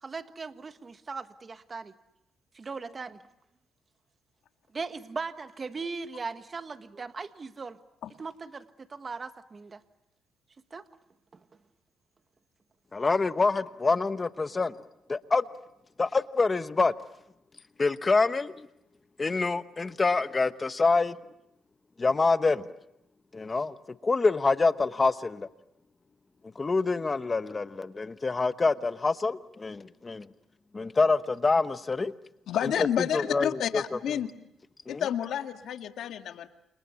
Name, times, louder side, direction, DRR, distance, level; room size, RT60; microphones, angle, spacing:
voice 1, 0.0-1.9 2.5-3.2 4.7-7.8 8.2-9.8 10.7-10.8 11.3-11.4, right 4 dB, 35° right, 1.5 m, -38 dB
voice 2, 12.9-14.7 15.1-15.5 16.0-16.9 17.8-18.7 19.2-21.2 22.0-22.7 23.3-23.7 24.0-25.5 26.6-30.3 30.7-32.1 33.1-33.8 34.9-35.0, left 3 dB, 25° left, 1.1 m, -26 dB
voice 3, 32.5-34.3 34.9-36.5, left 9 dB, 75° left, 1.9 m, -30 dB
30.0 x 28.0 x 7.0 m
cardioid pair, 90°, 0 cm